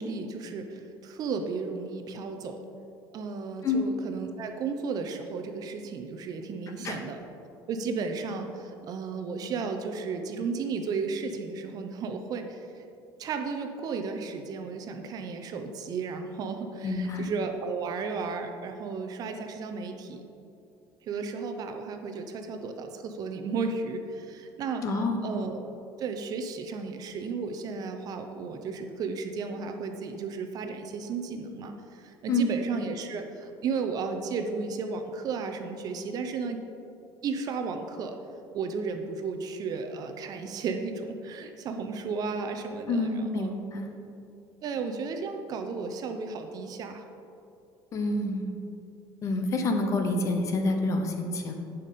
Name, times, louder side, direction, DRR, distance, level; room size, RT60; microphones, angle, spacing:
voice 1, 0.0-2.6 3.1-7.2 7.7-12.6 13.2-20.2 21.1-25.7 26.0-31.7 32.0-36.6 37.2-38.1 38.5-43.5 44.6-47.0, right 4 dB, 45° right, 6 dB, 0.7 m, -34 dB
voice 2, 16.8-17.2 24.8-25.2 32.3-32.5 42.9-43.9 47.9-48.5 49.2-51.5, left 2 dB, 35° left, 4 dB, 0.9 m, -27 dB
11.0 x 5.3 x 4.2 m, 2.7 s
cardioid pair, 145°, 9 cm